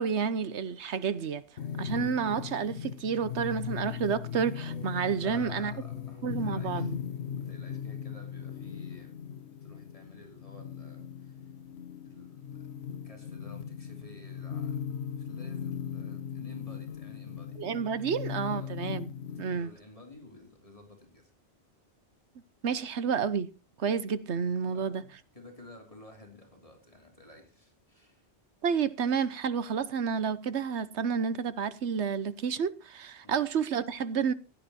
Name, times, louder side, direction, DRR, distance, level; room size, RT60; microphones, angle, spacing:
voice 1, 0.0-1.4 1.8-5.7 6.2-7.0 17.6-19.1 19.4-19.7 22.6-23.5 23.8-25.0 28.6-34.3, right 6 dB, 90° right, 1.3 m, -30 dB
sound 1, 1.6-19.6, left 8 dB, 80° left, 1.2 m, -38 dB
sound 2, 4.7-9.3, right 1 dB, ahead, 5.7 m, -56 dB
voice 2, 5.2-6.9 7.4-9.2 9.5-11.5 11.9-12.5 12.8-14.8 15.1-17.6 18.5-18.8 19.3-21.3 24.6-28.3 33.2-33.4, left 1 dB, 30° left, 3.4 m, -53 dB
16.0 x 9.9 x 4.2 m
omnidirectional pair, 1.1 m